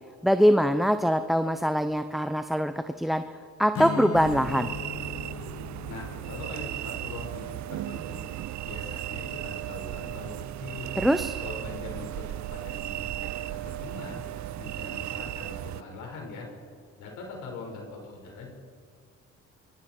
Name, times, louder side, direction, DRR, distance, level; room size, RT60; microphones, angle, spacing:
voice 1, 0.2-3.2 3.6-4.7 11.0-11.4, equal, ahead, 9 dB, 0.7 m, -23 dB
Strum, 3.7-9.1, left 6 dB, 50° left, 0.9 m, -39 dB
sound 1, 4.1-15.8, right 14 dB, 65° right, 0.6 m, -36 dB
voice 2, 5.9-8.3 8.6-11.0 11.4-14.2 14.6-16.5 17.0-18.5, left 3 dB, 85° left, 1 dB, 4.9 m, -42 dB
25.5 x 24.0 x 4.5 m, 2.2 s
cardioid pair, 90°, 30 cm